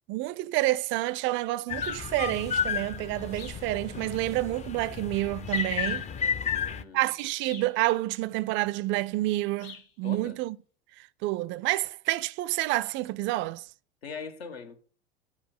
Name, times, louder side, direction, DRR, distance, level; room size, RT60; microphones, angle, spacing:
voice 1, 0.1-6.1 6.9-10.6 11.2-13.6, right 18 dB, 40° right, 0.4 m, -29 dB
sound 1, 1.7-6.8, left 7 dB, 20° left, 0.5 m, -32 dB
sound 2, 1.8-2.1 3.3-3.7 5.5-5.8 7.4-7.8 9.6-9.9, left 6 dB, 60° left, 1.6 m, -47 dB
voice 2, 6.4-7.1 10.0-10.4 14.0-14.8, left 5 dB, 75° left, 1.1 m, -41 dB
7.3 x 4.4 x 5.8 m
figure-of-eight pair, 70°, 31 cm